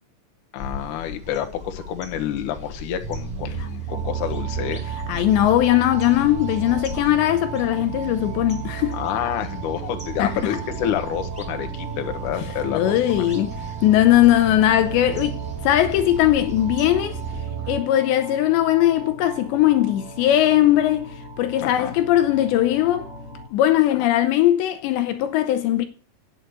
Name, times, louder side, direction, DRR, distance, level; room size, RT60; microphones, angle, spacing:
voice 1, 0.5-4.8 8.9-13.2 17.6-17.7 21.6-21.9, left 10 dB, 65° left, 2.2 m, -28 dB
sound 1, 0.6-17.4, left 1 dB, ahead, 2.5 m, -39 dB
sound 2, 3.0-17.8, right 11 dB, 70° right, 2.3 m, -34 dB
sound 3, 3.9-23.5, right 4 dB, 35° right, 2.9 m, -39 dB
voice 2, 5.1-9.0 10.2-10.6 12.7-13.6 13.8-17.2 17.7-21.1 21.4-23.1 23.5-25.9, left 13 dB, 80° left, 2.9 m, -19 dB
9.2 x 7.9 x 8.1 m
omnidirectional pair, 5.4 m